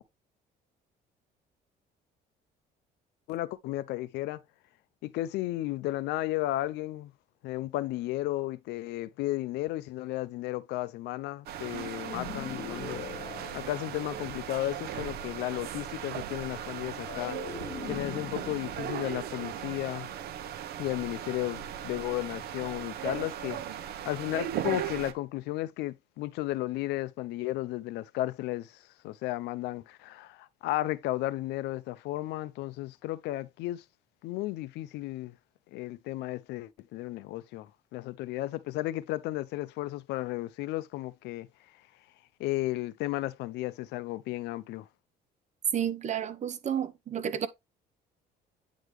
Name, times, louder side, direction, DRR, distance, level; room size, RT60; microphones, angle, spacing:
voice 1, 3.3-4.4 5.0-7.1 7.4-13.1 13.5-17.4 17.9-20.1 20.8-33.8 34.2-35.4 35.7-41.5 42.4-44.9, left 16 dB, 85° left, 0.6 m, -34 dB
sound 1, 11.5-25.1, right 10 dB, 70° right, 0.9 m, -38 dB
sound 2, 12.1-14.5 16.9-20.3, left 9 dB, 50° left, 0.8 m, -43 dB
voice 2, 45.7-47.5, right 9 dB, 45° right, 1.0 m, -31 dB
9.2 x 3.7 x 3.2 m
cardioid pair, 110°, 17 cm